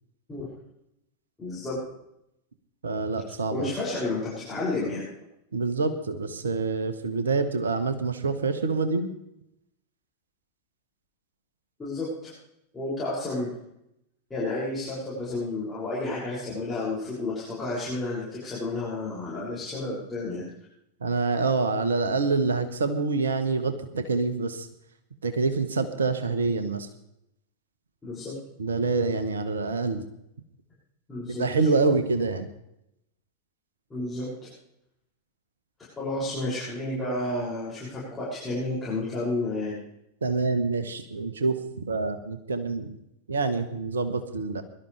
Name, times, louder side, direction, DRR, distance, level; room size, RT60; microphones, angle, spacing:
voice 1, 1.4-1.8 3.5-5.1 11.8-12.3 12.7-13.5 14.3-20.5 28.0-28.3 31.1-31.4 33.9-34.5 36.0-39.7, left 2 dB, 15° left, -9 dB, 6.8 m, -31 dB
voice 2, 2.8-3.7 5.5-9.1 21.0-24.7 25.2-26.9 28.6-30.0 31.3-32.5 40.2-42.9 43.3-44.6, right 4 dB, 70° right, 10 dB, 1.2 m, -26 dB
23.0 x 12.5 x 3.4 m, 0.81 s
figure-of-eight pair, 90°, 0 cm